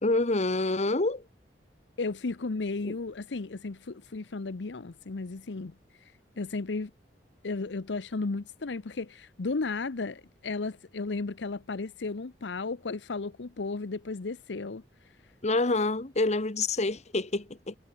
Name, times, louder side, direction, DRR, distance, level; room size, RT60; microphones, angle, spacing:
voice 1, 0.0-1.2 2.8-2.9 15.4-17.8, left 2 dB, 40° left, 1.3 m, -27 dB
voice 2, 2.0-5.7 6.4-6.9 7.4-14.8, left 3 dB, 85° left, 0.8 m, -34 dB
head